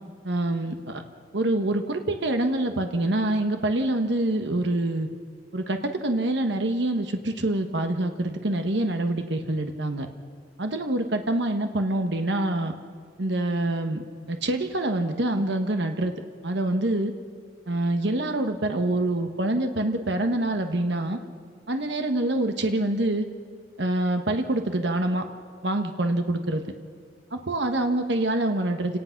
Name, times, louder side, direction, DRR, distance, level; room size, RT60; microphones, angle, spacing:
voice 1, 0.2-1.0 1.3-5.1 5.5-10.1 10.6-12.7 13.2-14.0 14.3-16.1 16.4-17.1 17.7-21.2 21.7-23.3 23.8-25.3 25.6-26.6 27.3-29.0, right 1 dB, 65° right, 6 dB, 1.3 m, -26 dB
28.5 x 18.5 x 5.9 m, 2.2 s
head